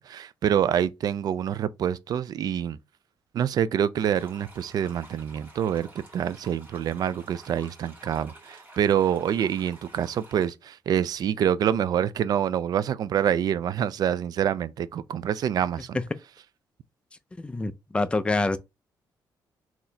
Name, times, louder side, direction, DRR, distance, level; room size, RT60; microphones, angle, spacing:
voice 1, 0.0-2.8 3.3-5.9 6.1-16.0, right 9 dB, 55° right, 0.3 m, -26 dB
sound 1, 4.0-10.5, right 2 dB, 25° right, 2.0 m, -50 dB
voice 2, 17.4-18.6, left 2 dB, 15° left, 0.4 m, -26 dB
3.9 x 2.9 x 2.7 m
cardioid pair, 120°, 8 cm